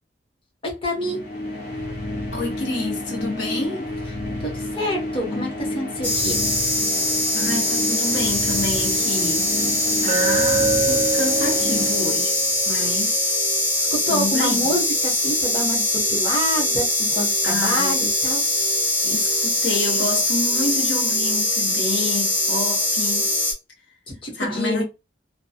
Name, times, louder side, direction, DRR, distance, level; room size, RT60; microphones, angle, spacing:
voice 1, 0.6-1.2 4.4-6.4 13.8-18.4 24.1-24.8, equal, 30° left, 0.9 m, -27 dB
sound 1, 0.9-12.8, left 1 dB, 60° left, 0.8 m, -30 dB
voice 2, 2.3-3.9 7.3-9.5 10.0-12.4 12.6-13.3 14.1-14.8 17.4-17.9 19.0-23.3 24.3-24.8, left 2 dB, 90° left, 0.9 m, -28 dB
sound 2, 6.0-23.5, left 1 dB, 10° left, 1.0 m, -22 dB
Glass, 10.1-14.2, right 4 dB, 35° right, 0.4 m, -27 dB
2.2 x 2.1 x 2.7 m
head